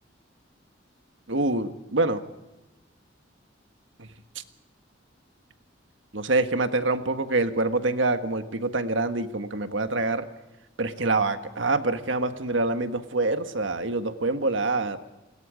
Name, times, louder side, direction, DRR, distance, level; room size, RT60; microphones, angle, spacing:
voice 1, 1.3-2.2 6.1-10.3 10.8-15.0, right 2 dB, 70° right, 8 dB, 1.6 m, -26 dB
29.5 x 21.5 x 5.1 m, 1.1 s
head